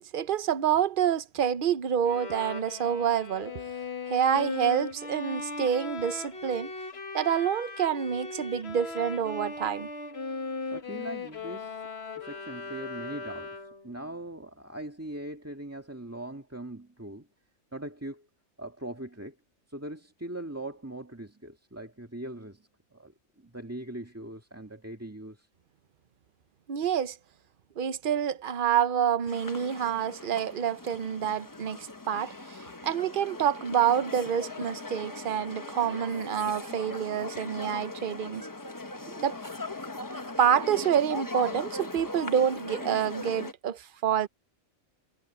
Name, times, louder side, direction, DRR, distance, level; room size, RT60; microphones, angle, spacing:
voice 1, 0.0-3.6 4.1-6.7 7.1-9.9 26.7-27.2 27.8-38.5 39.1-39.4 40.4-44.3, right 8 dB, 45° right, 0.8 m, -27 dB
Bowed string instrument, 2.0-13.9, left 3 dB, 50° left, 1.9 m, -38 dB
voice 2, 10.7-11.9 12.2-17.3 17.7-18.3 18.6-19.4 19.7-25.5, right 1 dB, 10° right, 1.8 m, -41 dB
sound 1, 29.2-43.5, left 2 dB, 15° left, 0.8 m, -39 dB
omnidirectional pair, 1.4 m